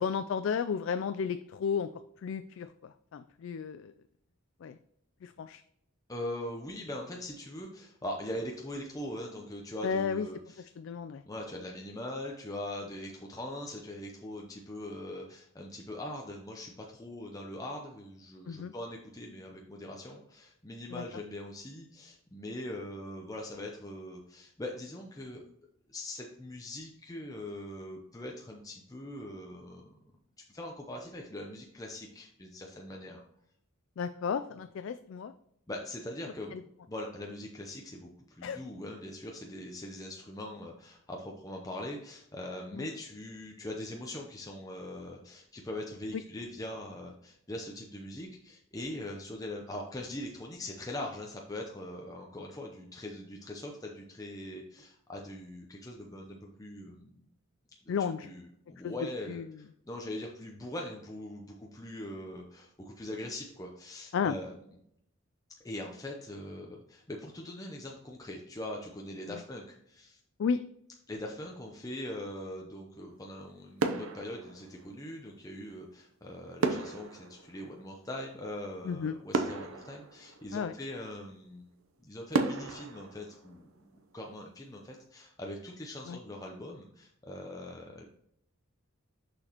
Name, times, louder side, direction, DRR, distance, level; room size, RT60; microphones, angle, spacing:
voice 1, 0.0-1.9 2.2-2.7 3.1-3.9 4.6-4.8 5.2-5.6 9.8-10.3 10.8-11.2 18.5-18.7 20.9-21.0 34.0-35.3 36.5-36.6 38.4-38.6 42.7-42.9 46.1-46.2 57.9-58.3 58.8-58.9 59.3-59.5 64.1-64.3 70.4-70.6 78.8-79.2 80.5-80.7 86.1-86.2, left 6 dB, 65° left, 10 dB, 0.3 m, -32 dB
voice 2, 6.1-10.7 11.3-25.4 25.9-30.0 30.5-33.2 35.7-36.6 36.9-57.2 57.8-57.9 58.2-64.8 65.6-70.2 71.1-81.7 82.0-88.0, left 1 dB, 15° left, 0 dB, 0.6 m, -42 dB
sound 1, 73.1-73.5 73.8-75.3 76.6-78.5 78.9-79.0 79.3-80.9 81.5-81.6 82.3-84.2 84.5-84.8, right 3 dB, 80° right, 0.7 m, -34 dB
6.4 x 6.0 x 2.9 m, 0.72 s
head